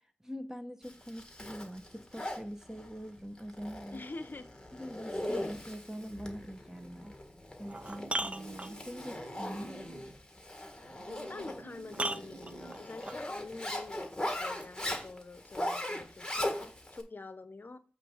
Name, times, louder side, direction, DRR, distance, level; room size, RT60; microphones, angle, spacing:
voice 1, 0.2-4.0 4.7-7.1 7.6-9.8, equal, 10° right, 1.1 m, -43 dB
Zipper (clothing), 0.8-17.0, left 1 dB, 15° left, 1.6 m, -40 dB
voice 2, 3.9-4.5 10.7-17.8, left 3 dB, 50° left, 0.8 m, -46 dB
sound 1, 7.0-7.1 7.6-9.1 11.1-11.2 11.9-13.2 14.6-14.7, right 2 dB, 30° right, 0.5 m, -37 dB
sound 2, 7.8-10.2 10.7-13.0, right 6 dB, 85° right, 0.5 m, -53 dB
8.3 x 3.3 x 5.5 m
cardioid pair, 45°, 4 cm